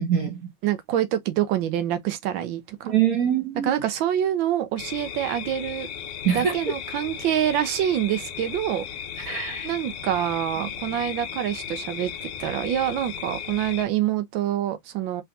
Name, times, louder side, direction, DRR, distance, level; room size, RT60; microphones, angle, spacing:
voice 1, 0.0-0.5 2.9-3.7 6.2-6.7 9.2-9.7 10.6-10.7, right 8 dB, 60° right, 1.0 m, -24 dB
voice 2, 0.6-2.9 3.6-5.9 6.3-8.9 9.6-12.1 12.4-15.2, right 11 dB, 80° right, 1.3 m, -26 dB
sound 1, 4.8-13.8, left 8 dB, 80° left, 0.6 m, -36 dB
3.5 x 3.4 x 2.6 m
omnidirectional pair, 2.2 m